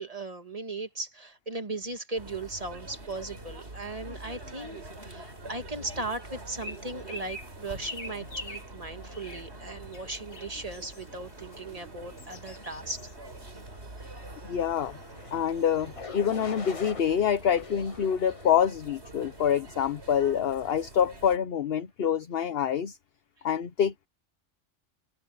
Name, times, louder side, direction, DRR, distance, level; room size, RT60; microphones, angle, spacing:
voice 1, 0.0-13.1, right 2 dB, 30° right, 1.9 m, -37 dB
sound 1, 2.1-21.4, right 2 dB, 60° right, 4.2 m, -45 dB
sound 2, 6.6-17.3, left 2 dB, 90° left, 2.8 m, -47 dB
voice 2, 14.4-15.0 15.3-23.0 23.4-24.1, left 8 dB, 55° left, 1.0 m, -26 dB
sound 3, 15.0-15.4 15.9-17.0 17.6-18.6 19.2-19.6, left 4 dB, 30° left, 0.9 m, -43 dB
omnidirectional pair, 1.3 m